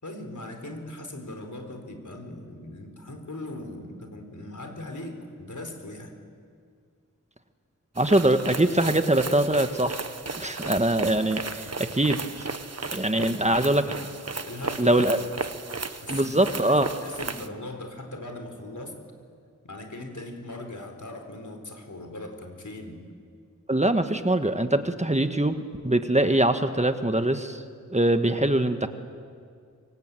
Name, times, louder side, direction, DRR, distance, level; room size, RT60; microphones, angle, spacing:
voice 1, 0.0-6.2 13.2-14.1 14.4-15.0 16.0-19.0 19.6-23.0, left 1 dB, 75° left, 5 dB, 4.1 m, -39 dB
voice 2, 8.0-10.0 10.4-12.2 12.9-13.9 14.8-15.2 16.1-16.9 23.7-27.6 27.9-28.9, right 1 dB, 20° right, 8 dB, 1.5 m, -23 dB
sound 1, 8.0-17.5, right 4 dB, 55° right, 1.3 m, -35 dB
26.5 x 24.0 x 9.2 m, 2.2 s
wide cardioid pair, 50°, 30 cm